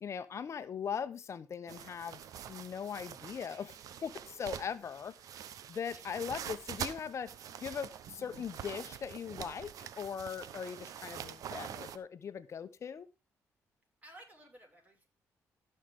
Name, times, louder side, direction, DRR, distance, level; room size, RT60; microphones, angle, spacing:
voice 1, 0.0-2.2 2.5-3.8 4.0-5.1 5.7-7.3 7.6-13.1, left 7 dB, 55° left, 1.0 m, -40 dB
sound 1, 1.7-12.0, right 9 dB, 75° right, 0.8 m, -45 dB
voice 2, 14.0-15.1, right 1 dB, 25° right, 5.7 m, -56 dB
15.5 x 6.6 x 3.6 m
cardioid pair, 80°, 6 cm